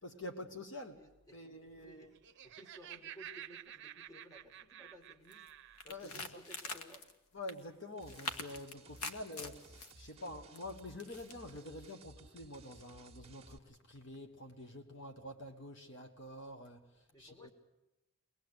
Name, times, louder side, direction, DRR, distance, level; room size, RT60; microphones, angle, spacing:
voice 1, 0.0-1.0 1.3-2.1 5.8-6.1 7.3-17.5, left 1 dB, 55° left, 5 dB, 1.4 m, -47 dB
voice 2, 0.9-1.4 1.8-2.1 2.4-7.1 17.1-17.5, equal, 15° left, 4 dB, 2.2 m, -57 dB
Laughter, 2.0-5.9, right 11 dB, 55° right, 0.8 m, -51 dB
sound 1, 5.3-5.5 5.8-7.1 7.5-7.6 8.0-9.9 10.5-11.3, left 3 dB, 85° left, 1.6 m, -44 dB
sound 2, 8.0-13.6, right 2 dB, 25° right, 1.5 m, -58 dB
23.5 x 19.0 x 8.2 m, 0.95 s
head